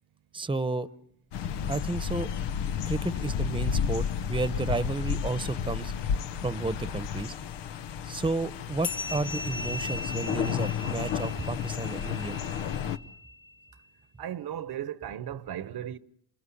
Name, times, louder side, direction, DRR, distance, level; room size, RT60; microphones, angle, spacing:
voice 1, 0.3-0.9 1.7-2.3 2.9-5.9 6.4-7.3 8.0-12.4, right 3 dB, 10° right, 1.0 m, -32 dB
sound 1, 1.3-13.0, left 8 dB, 90° left, 1.1 m, -32 dB
sound 2, 8.8-13.7, left 3 dB, 50° left, 1.5 m, -39 dB
voice 2, 14.2-16.0, right 10 dB, 60° right, 1.1 m, -36 dB
27.5 x 20.0 x 10.0 m
cardioid pair, 85°, 41 cm